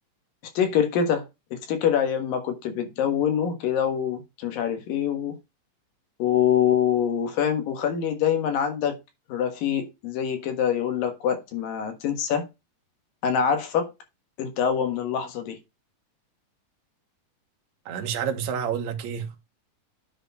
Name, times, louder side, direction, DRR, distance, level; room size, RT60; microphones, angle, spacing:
voice 1, 0.5-1.2 1.5-5.3 6.2-9.0 9.3-12.5 13.2-13.9 14.4-15.6, left 8 dB, 80° left, 3.2 m, -25 dB
voice 2, 17.9-19.4, right 8 dB, 60° right, 2.4 m, -29 dB
10.0 x 4.5 x 4.1 m
omnidirectional pair, 3.9 m